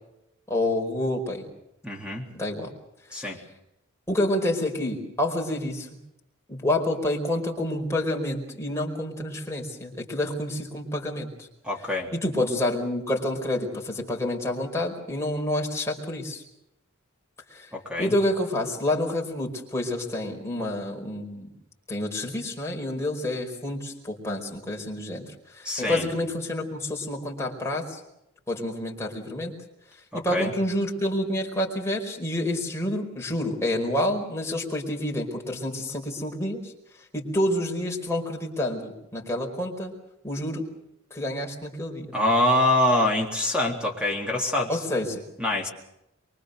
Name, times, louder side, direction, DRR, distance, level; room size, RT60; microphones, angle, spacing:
voice 1, 0.5-1.4 2.3-2.7 3.2-3.3 4.1-5.9 6.5-11.5 12.1-16.4 17.5-17.7 18.0-21.5 21.9-25.3 25.5-28.0 28.5-29.5 30.1-36.7 37.1-39.9 40.2-40.6 41.1-42.1 44.7-45.2, left 1 dB, 15° left, -1 dB, 5.0 m, -28 dB
voice 2, 1.8-2.2 3.1-3.4 11.6-12.1 17.7-18.1 25.6-26.1 30.1-30.5 42.1-44.8 45.4-45.7, left 1 dB, 5° right, 1 dB, 3.5 m, -25 dB
25.0 x 23.5 x 6.7 m, 0.85 s
head